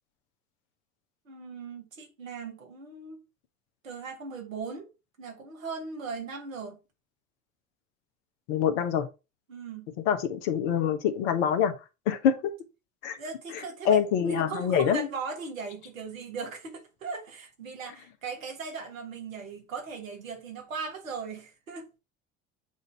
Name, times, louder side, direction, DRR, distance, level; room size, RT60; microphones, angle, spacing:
voice 1, 1.2-3.2 3.8-4.9 5.2-6.8 9.5-9.9 13.2-21.9, right 4 dB, 85° right, 1.4 m, -38 dB
voice 2, 8.5-9.0 10.0-11.8 12.1-12.4 13.0-13.2 13.8-15.1, left 8 dB, 65° left, 1.2 m, -25 dB
8.0 x 2.7 x 4.4 m
hypercardioid pair, 70°, 39 cm